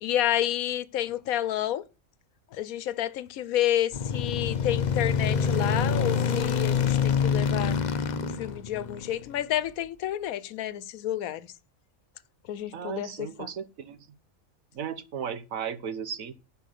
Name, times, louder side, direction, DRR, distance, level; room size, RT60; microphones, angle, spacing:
voice 1, 0.0-1.8 2.5-7.8 8.1-11.5 12.5-13.1 13.4-13.5, left 12 dB, 90° left, 1.1 m, -30 dB
sound 1, 3.9-9.4, left 6 dB, 45° left, 0.6 m, -26 dB
voice 2, 12.7-14.2 14.7-16.3, right 7 dB, 75° right, 1.4 m, -35 dB
10.0 x 5.2 x 6.6 m
omnidirectional pair, 1.4 m